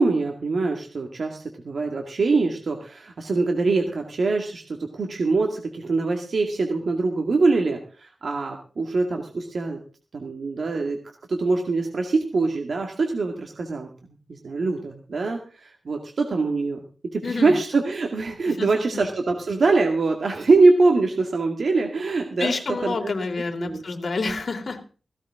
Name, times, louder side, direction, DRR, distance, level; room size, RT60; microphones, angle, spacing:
voice 1, 0.0-9.8 10.1-11.0 11.3-13.9 14.3-23.1 23.6-23.8 24.2-24.4, right 3 dB, 60° right, 3 dB, 2.1 m, -23 dB
voice 2, 17.2-17.5 18.5-18.7 22.4-24.9, left 4 dB, 50° left, 3 dB, 3.4 m, -28 dB
16.5 x 16.5 x 3.7 m, 0.38 s
wide cardioid pair, 165°, 0 cm